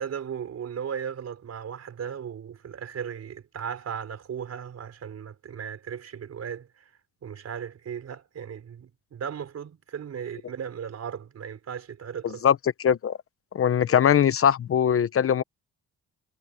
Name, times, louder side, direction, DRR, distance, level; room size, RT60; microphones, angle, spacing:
voice 1, 0.0-6.9 7.2-12.4, right 8 dB, 55° right, 4.8 m, -36 dB
voice 2, 12.4-13.2 13.5-15.4, left 8 dB, 45° left, 0.9 m, -21 dB
cardioid pair, 90°, 30 cm